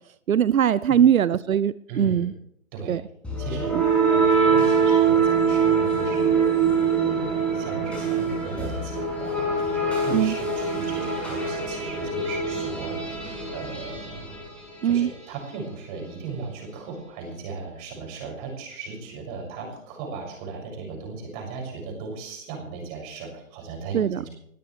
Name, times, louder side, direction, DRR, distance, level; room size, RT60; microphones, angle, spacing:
voice 1, 0.3-2.3 2.9-3.0 10.1-10.3 14.8-15.1 23.9-24.2, right 9 dB, 85° right, 18 dB, 0.6 m, -21 dB
voice 2, 1.9-2.3 2.7-3.0 3.4-6.7 7.0-14.0 14.8-24.3, right 4 dB, 25° right, 0 dB, 6.8 m, -37 dB
sound 1, 3.2-15.1, right 5 dB, 5° left, 6.5 m, -24 dB
20.5 x 17.5 x 3.3 m, 0.70 s
hypercardioid pair, 145°, 40 cm